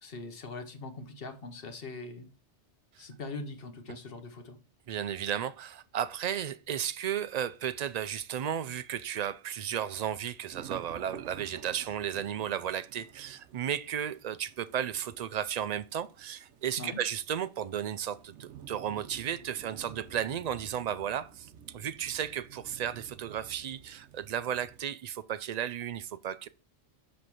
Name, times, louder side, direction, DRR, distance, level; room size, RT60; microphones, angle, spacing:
voice 1, 0.0-2.3 3.0-4.6 16.8-17.0, left 3 dB, 55° left, 1.2 m, -42 dB
voice 2, 4.9-26.5, right 9 dB, 60° right, 0.4 m, -34 dB
sound 1, 7.3-7.4 7.9-8.0 8.7-9.0 9.6-24.8, right 8 dB, 90° right, 1.0 m, -51 dB
7.6 x 3.4 x 6.0 m
omnidirectional pair, 1.2 m